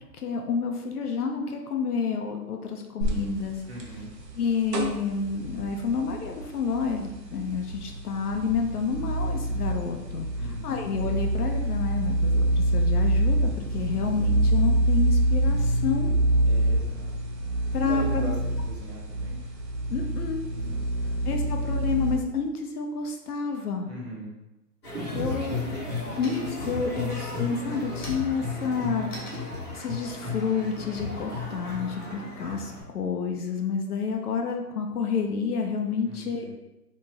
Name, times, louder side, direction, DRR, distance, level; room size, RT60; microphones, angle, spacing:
voice 1, 0.1-3.6 4.4-10.3 10.6-16.1 17.7-18.3 19.9-20.4 21.3-23.9 25.1-29.4 29.7-36.5, left 5 dB, 65° left, 3 dB, 0.6 m, -29 dB
sound 1, 3.0-22.2, right 1 dB, 80° right, 0.9 m, -26 dB
voice 2, 3.7-4.1 10.4-10.7 16.4-17.1 17.8-18.3 18.7-19.3 20.5-21.3 23.9-24.3 36.0-36.5, right 1 dB, 40° right, -2 dB, 0.8 m, -41 dB
sound 2, 24.6-25.1 25.6-26.0 26.2-26.8 27.2-31.7, left 1 dB, 50° left, 1.2 m, -47 dB
sound 3, 24.8-32.8, left 3 dB, 15° left, 1.0 m, -34 dB
2.9 x 2.4 x 3.8 m, 0.96 s
hypercardioid pair, 175°, 48 cm